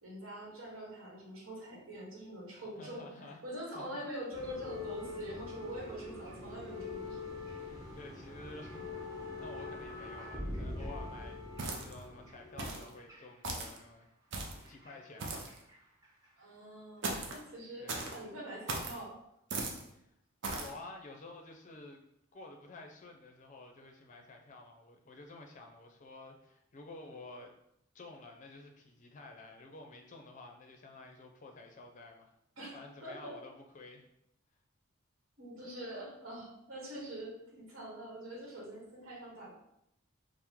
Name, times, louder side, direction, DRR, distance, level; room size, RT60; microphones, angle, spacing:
voice 1, 0.0-3.0 3.4-7.2 16.4-19.1 32.6-33.3 35.4-39.5, right 1 dB, 75° right, -3 dB, 1.2 m, -44 dB
voice 2, 2.8-3.4 3.7-4.0 7.9-14.1 14.7-15.5 17.8-18.1 19.9-20.1 20.6-22.0 22.3-27.5 27.9-32.3 32.7-34.0, left 2 dB, 35° left, 3 dB, 0.5 m, -51 dB
sound 1, 4.3-13.8 14.7-16.3 17.2-17.3, left 3 dB, 15° right, 0.7 m, -44 dB
sound 2, 11.6-12.1 12.6-12.9 13.4-13.8 14.3-14.7 15.2-15.6 17.0-17.4 17.9-18.2 18.7-19.0 19.5-19.8 20.4-20.7, right 3 dB, 55° right, 0.6 m, -38 dB
4.5 x 2.1 x 3.5 m, 0.81 s
head